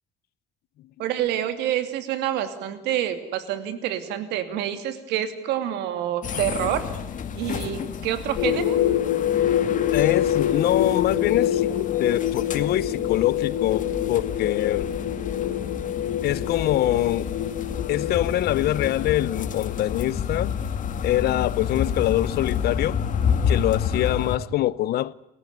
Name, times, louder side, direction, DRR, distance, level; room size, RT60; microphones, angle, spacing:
voice 1, 1.0-6.8 7.3-8.8, right 11 dB, 90° right, 2.7 m, -27 dB
sound 1, 6.2-24.4, left 7 dB, 50° left, 2.2 m, -30 dB
sound 2, 8.4-20.0, left 11 dB, 85° left, 1.8 m, -26 dB
voice 2, 9.9-14.9 16.2-17.3 17.9-20.5 21.0-23.0 23.5-25.1, left 14 dB, 70° left, 0.9 m, -24 dB
29.5 x 15.5 x 9.5 m
cardioid pair, 110°, 17 cm